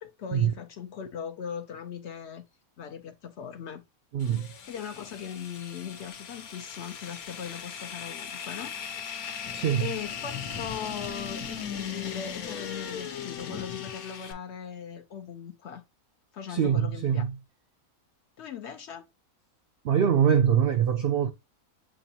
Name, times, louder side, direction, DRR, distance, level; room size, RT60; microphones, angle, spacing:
voice 1, 0.0-2.4 2.8-3.8 4.7-10.3 10.6-15.8 16.3-17.2 18.4-19.0, left 8 dB, 65° left, 0.7 m, -39 dB
voice 2, 4.1-4.5 9.5-9.9 16.5-17.4 19.8-21.3, right 8 dB, 80° right, 0.5 m, -24 dB
sound 1, 4.2-14.3, left 7 dB, 80° left, 1.3 m, -38 dB
7.6 x 2.6 x 2.7 m
omnidirectional pair, 1.5 m